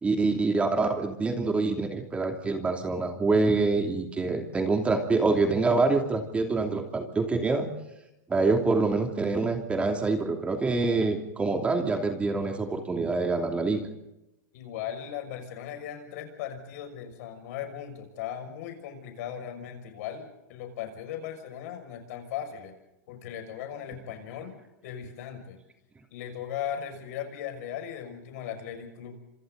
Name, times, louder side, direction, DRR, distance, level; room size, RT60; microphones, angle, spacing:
voice 1, 0.0-7.7 8.3-13.8, right 3 dB, 15° right, 4 dB, 2.8 m, -26 dB
voice 2, 14.5-22.7 23.1-24.6 24.8-25.6 26.1-29.2, left 9 dB, 60° left, 6 dB, 6.3 m, -38 dB
29.5 x 27.0 x 4.0 m, 0.91 s
supercardioid pair, 145°, 9 cm